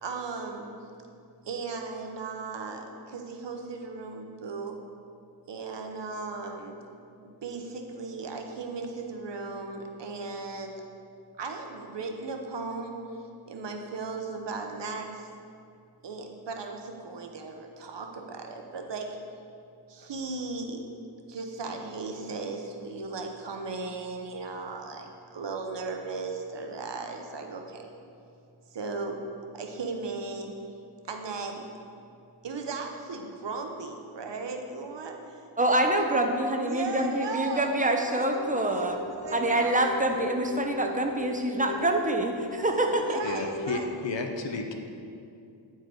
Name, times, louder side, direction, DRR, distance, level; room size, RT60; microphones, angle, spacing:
voice 1, 0.0-0.7 1.4-4.8 5.5-6.8 7.2-10.8 11.4-12.9 13.5-15.3 16.0-19.1 19.9-20.8 21.3-27.9 28.7-29.2 29.5-30.5 31.1-31.6 32.4-35.4 36.6-39.7 42.7-43.9, right 4 dB, 70° right, 0.9 m, -37 dB
voice 2, 35.6-39.0 39.3-43.2, right 1 dB, 20° right, 0.7 m, -26 dB
sound 1, 37.7-43.9, left 1 dB, 40° left, 0.5 m, -40 dB
voice 3, 43.2-44.7, left 3 dB, 70° left, 0.8 m, -32 dB
9.2 x 4.6 x 4.6 m
wide cardioid pair, 90°, 45 cm